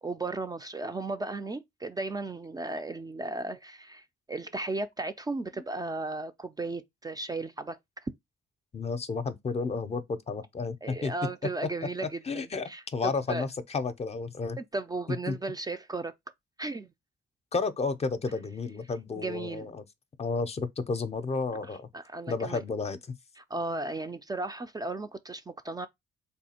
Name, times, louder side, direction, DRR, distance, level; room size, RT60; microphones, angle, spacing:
voice 1, 0.0-8.1 10.8-13.5 14.6-16.1 16.6-16.9 19.1-19.7 21.6-22.6 23.4-25.9, right 3 dB, 20° right, 0.4 m, -35 dB
voice 2, 8.7-11.1 12.0-14.6 15.3-15.4 17.5-19.8 20.2-21.9 22.3-23.0, left 4 dB, 30° left, 0.6 m, -32 dB
3.5 x 2.3 x 4.2 m
cardioid pair, 90°, 20 cm